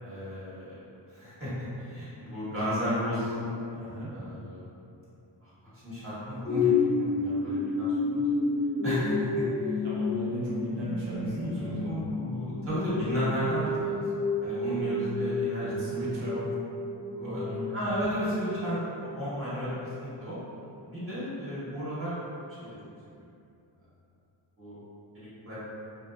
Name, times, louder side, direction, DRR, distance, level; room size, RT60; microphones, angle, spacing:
voice 1, 0.0-3.5 4.1-4.7 5.4-5.5 5.8-8.3 8.8-9.4 9.7-9.8 10.8-14.0 14.4-15.7 17.1-20.4 20.9-22.1 22.6-22.8 24.6-24.7 25.1-25.7, equal, 30° right, -11 dB, 1.2 m, -34 dB
voice 2, 3.7-4.1 9.8-11.9 15.6-16.5 17.2-17.7, equal, 70° right, -8 dB, 0.9 m, -36 dB
sound 1, 6.4-20.0 20.5-20.6, left 3 dB, 35° left, 0.5 m, -31 dB
2.6 x 2.3 x 2.2 m, 2.7 s
cardioid pair, 60°, 44 cm